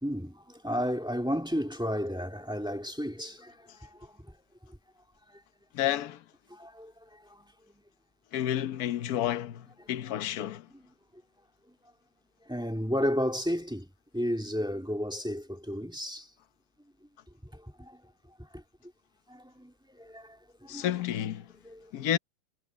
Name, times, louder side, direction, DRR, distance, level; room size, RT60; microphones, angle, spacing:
voice 1, 0.0-4.3 6.5-7.5 12.5-13.9 14.1-16.3 17.5-18.0 18.5-18.6 19.3-20.9 21.6-21.9, equal, ahead, 2.0 m, -33 dB
voice 2, 5.7-6.2 8.3-10.7 20.7-21.5 21.9-22.2, left 11 dB, 55° left, 1.3 m, -30 dB
omnidirectional pair, 2.1 m